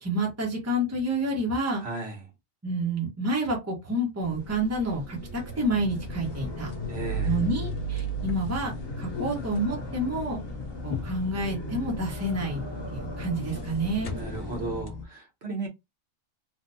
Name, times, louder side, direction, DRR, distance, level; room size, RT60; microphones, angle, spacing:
voice 1, 0.0-1.8 2.6-6.7 7.2-8.7 9.0-10.4 10.8-12.6 12.9-14.2, right 1 dB, 15° right, 0.9 m, -29 dB
voice 2, 1.8-2.3 6.9-7.4 14.1-15.7, right 3 dB, 60° right, 1.1 m, -35 dB
sound 1, 4.2-14.8, right 1 dB, 20° left, 0.8 m, -40 dB
sound 2, 5.7-15.1, left 1 dB, 70° left, 0.3 m, -35 dB
3.4 x 2.2 x 2.6 m
omnidirectional pair, 1.3 m